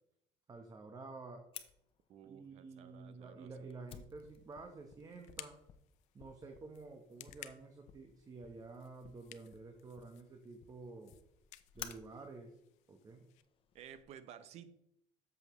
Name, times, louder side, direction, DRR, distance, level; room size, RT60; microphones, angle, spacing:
voice 1, 0.5-1.4 2.2-5.6 6.1-11.1 11.7-12.5 12.9-13.2, right 3 dB, 30° right, 4 dB, 1.1 m, -50 dB
Fire, 1.5-14.0, left 8 dB, 50° left, 0.8 m, -56 dB
voice 2, 2.1-3.5 13.7-14.7, right 9 dB, 65° right, 13 dB, 0.8 m, -54 dB
sound 1, 4.2-13.4, left 15 dB, 75° left, 0.6 m, -58 dB
8.1 x 7.3 x 3.1 m, 0.77 s
cardioid pair, 100°, 12 cm